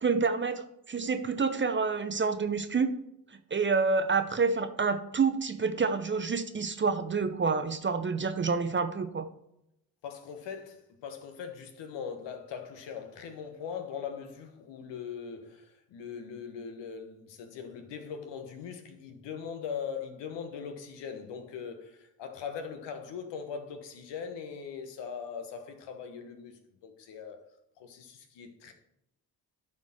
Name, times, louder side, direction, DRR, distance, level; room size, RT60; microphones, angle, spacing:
voice 1, 0.0-2.9 3.5-9.3, right 4 dB, 25° right, 0.7 m, -28 dB
voice 2, 10.0-27.4 27.8-28.7, left 6 dB, 60° left, 1.4 m, -40 dB
12.0 x 4.4 x 4.3 m
hypercardioid pair, 45°, 47 cm